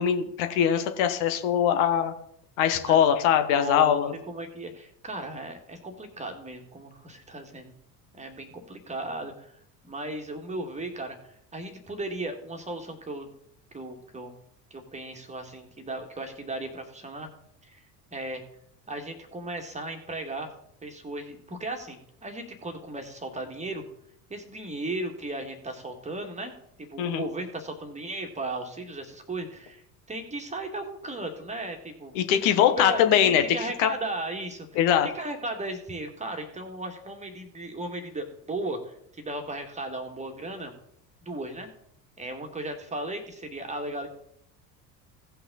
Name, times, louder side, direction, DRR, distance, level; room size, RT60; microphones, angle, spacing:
voice 1, 0.0-2.1 2.6-4.1 27.0-27.3 32.1-33.9 34.7-35.1, left 9 dB, 55° left, 8 dB, 1.4 m, -22 dB
voice 2, 3.5-4.0 4.3-7.7 8.1-9.5 9.8-13.3 13.7-14.3 14.7-17.3 17.6-17.8 18.1-18.4 18.9-20.5 20.8-23.8 24.3-26.5 26.8-29.8 30.1-32.2 32.8-34.7 35.1-40.7 41.2-41.7 42.2-44.1, right 2 dB, 15° right, 4 dB, 2.0 m, -36 dB
17.0 x 5.8 x 4.1 m, 0.71 s
figure-of-eight pair, 70°, 49 cm